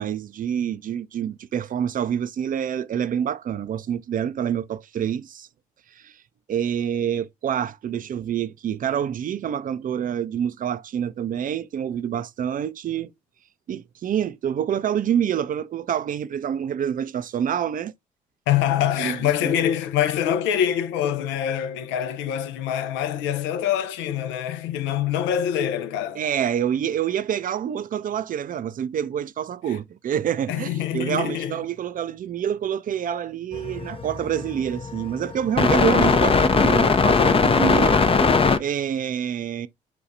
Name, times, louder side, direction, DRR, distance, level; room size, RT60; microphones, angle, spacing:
voice 1, 0.0-5.5 6.0-6.2 6.5-13.1 13.7-17.9 19.0-19.2 19.4-19.6 26.1-38.0 38.3-39.7, right 9 dB, 45° right, 0.5 m, -27 dB
voice 2, 18.5-26.2 30.5-31.6, left 10 dB, 75° left, 0.6 m, -25 dB
sound 1, 33.5-38.6, left 4 dB, 30° left, 0.5 m, -20 dB
5.9 x 2.3 x 2.6 m
hypercardioid pair, 45°, 19 cm